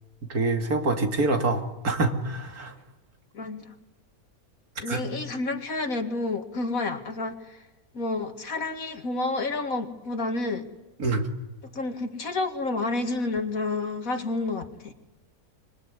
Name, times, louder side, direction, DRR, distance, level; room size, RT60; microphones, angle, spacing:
voice 1, 0.3-2.7 4.9-5.0 11.0-11.3, right 3 dB, 85° right, 4 dB, 2.9 m, -26 dB
voice 2, 3.3-3.7 4.8-7.6 7.9-10.7 11.7-14.9, left 3 dB, 70° left, 6 dB, 2.5 m, -30 dB
26.0 x 23.0 x 9.8 m, 1.1 s
omnidirectional pair, 1.5 m